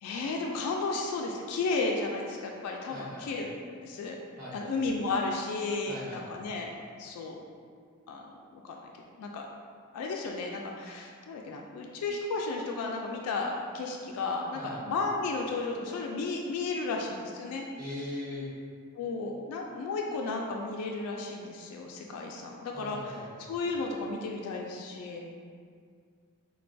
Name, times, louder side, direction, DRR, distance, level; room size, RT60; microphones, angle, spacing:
voice 1, 0.0-3.5 3.8-4.2 4.5-6.7 7.0-7.4 8.1-8.3 8.5-8.9 9.2-9.5 9.9-17.6 19.0-23.2 23.5-25.2, left 3 dB, 80° left, 4 dB, 0.3 m, -33 dB
voice 2, 2.9-3.2 4.4-4.6 5.9-6.2 14.5-14.8 17.8-18.4 22.7-23.3, left 1 dB, 40° right, -8 dB, 0.8 m, -40 dB
3.5 x 2.2 x 2.5 m, 2.1 s
head